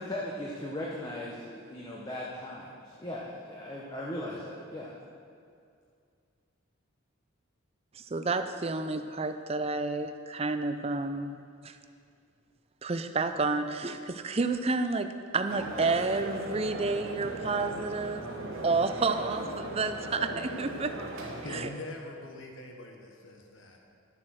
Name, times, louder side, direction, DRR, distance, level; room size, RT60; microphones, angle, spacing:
voice 1, 0.0-5.0, left 1 dB, 20° left, -4 dB, 1.0 m, -38 dB
voice 2, 8.0-11.4 11.6-11.7 12.8-18.3 18.6-21.0 21.5-21.7, right 3 dB, 30° right, 8 dB, 0.5 m, -30 dB
Indoor Crowd talking arabic chatting, 15.5-21.6, right 1 dB, 80° right, 1.5 m, -38 dB
voice 3, 21.4-23.8, left 2 dB, 70° left, 2 dB, 1.2 m, -43 dB
12.0 x 7.5 x 6.3 m, 2.3 s
head